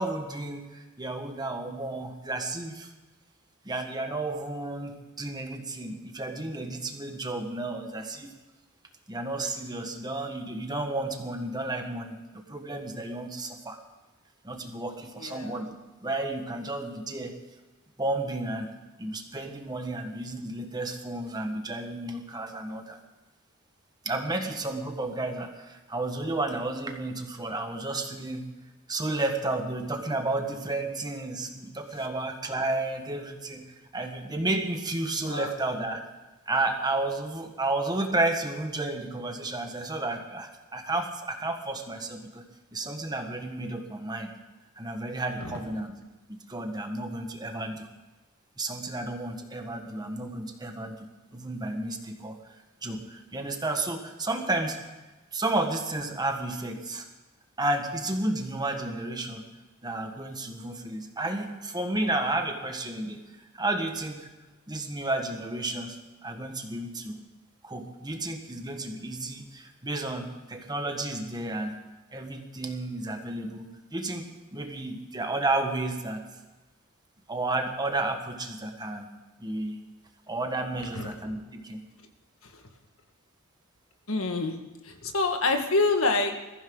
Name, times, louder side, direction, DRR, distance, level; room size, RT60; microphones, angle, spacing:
voice 1, 0.0-2.9 3.6-8.3 9.1-13.8 14.4-15.8 16.0-17.3 18.0-23.0 24.0-28.5 28.9-33.6 33.9-36.0 36.5-42.4 42.7-44.3 44.8-45.9 46.3-47.9 48.6-51.1 51.3-52.4 52.8-54.8 55.3-57.1 57.6-59.4 59.8-63.2 63.5-64.3 64.7-67.2 67.6-71.8 72.1-76.2 77.3-79.1 79.4-79.8 80.3-81.8, right 2 dB, 20° right, 4 dB, 1.5 m, -32 dB
voice 2, 15.2-15.6 35.2-35.5 80.9-81.1 82.5-82.6 84.1-84.6 84.8-86.4, left 3 dB, 70° left, 5 dB, 1.7 m, -26 dB
21.5 x 14.5 x 4.0 m, 1.2 s
head